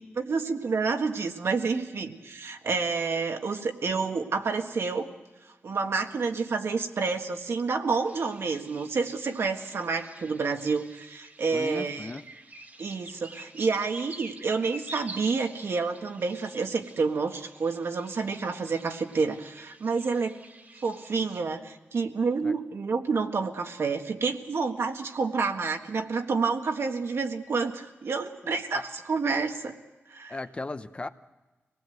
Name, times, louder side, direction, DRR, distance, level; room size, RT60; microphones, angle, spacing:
voice 1, 0.2-5.1 5.6-12.1 12.8-20.4 20.8-29.8 30.1-30.4, right 4 dB, 70° right, 4 dB, 1.6 m, -29 dB
sound 1, 8.1-21.4, right 2 dB, 40° right, 2.0 m, -48 dB
voice 2, 11.5-12.2 22.4-22.6 28.7-28.8 30.3-31.1, left 2 dB, 25° left, 10 dB, 0.7 m, -36 dB
25.0 x 19.0 x 7.9 m, 1.2 s
wide cardioid pair, 155°, 4 cm